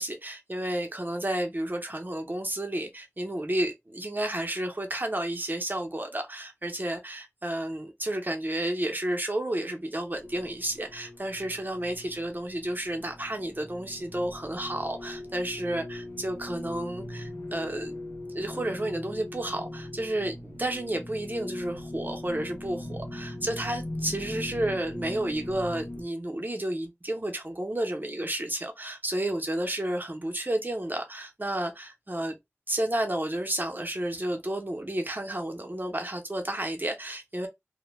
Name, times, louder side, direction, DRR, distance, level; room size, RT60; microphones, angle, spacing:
voice 1, 0.0-18.0 18.3-32.3 32.7-37.5, right 1 dB, 40° right, 0.7 m, -31 dB
sound 1, 10.1-26.0, left 1 dB, 90° left, 0.6 m, -40 dB
2.1 x 2.1 x 3.1 m
wide cardioid pair, 40°, 5 cm